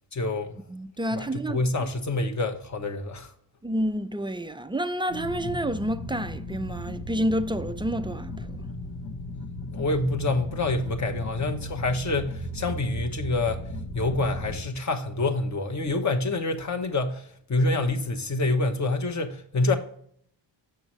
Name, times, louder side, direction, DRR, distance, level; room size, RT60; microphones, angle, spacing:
voice 1, 0.1-0.5 1.1-3.3 9.7-13.6 13.9-19.8, left 2 dB, 40° left, 1.0 m, -27 dB
voice 2, 0.7-1.6 3.6-8.6, equal, 10° right, 0.4 m, -29 dB
sound 1, 5.1-14.6, left 1 dB, 65° left, 1.1 m, -36 dB
7.0 x 6.2 x 3.1 m
cardioid pair, 75°, 46 cm